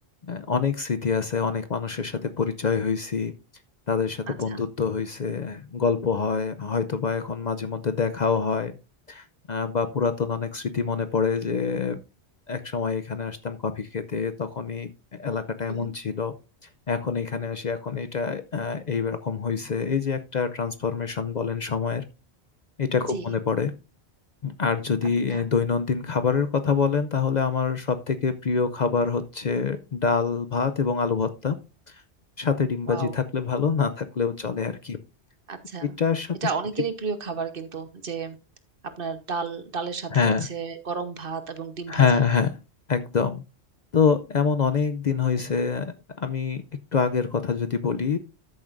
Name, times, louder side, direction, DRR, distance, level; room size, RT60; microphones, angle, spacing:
voice 1, 0.2-3.3 3.9-8.7 9.1-12.0 12.5-16.3 16.9-22.0 22.8-23.7 24.4-31.6 31.9-32.0 32.4-35.0 35.8-36.4 40.1-40.5 41.9-42.5 42.9-43.4 43.9-46.6 46.9-48.2, left 5 dB, 50° left, 11 dB, 0.6 m, -26 dB
voice 2, 4.3-4.6 15.7-15.9 23.0-23.3 25.3-25.4 32.9-33.1 35.5-36.0 36.4-38.4 39.0-42.3, right 5 dB, 55° right, 10 dB, 1.2 m, -32 dB
13.0 x 7.2 x 2.5 m, 0.29 s
omnidirectional pair, 1.1 m